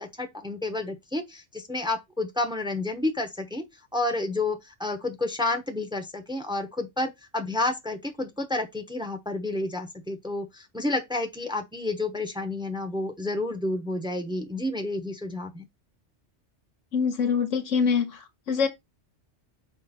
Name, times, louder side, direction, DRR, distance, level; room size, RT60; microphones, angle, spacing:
voice 1, 0.0-3.6 3.9-15.7, left 2 dB, 5° right, 1.0 m, -30 dB
voice 2, 16.9-18.7, left 6 dB, 90° left, 1.6 m, -25 dB
5.7 x 4.6 x 4.3 m
omnidirectional pair, 1.2 m